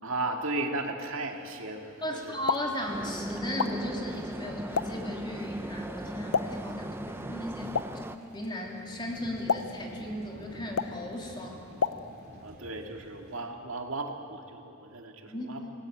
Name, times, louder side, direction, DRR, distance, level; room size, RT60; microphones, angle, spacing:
voice 1, 0.0-2.4 2.7-2.8 12.4-15.6, right 2 dB, 70° right, 3 dB, 2.2 m, -35 dB
sound 1, 1.1-13.4, equal, 50° right, 3.2 m, -53 dB
voice 2, 2.0-7.8 8.3-11.6 15.2-15.7, left 1 dB, 20° left, 0 dB, 3.2 m, -36 dB
Explosion, 2.2-12.5, left 5 dB, 90° left, 0.7 m, -36 dB
sound 2, 2.9-8.2, right 1 dB, 10° right, 0.6 m, -37 dB
26.5 x 18.0 x 8.6 m, 2.7 s
head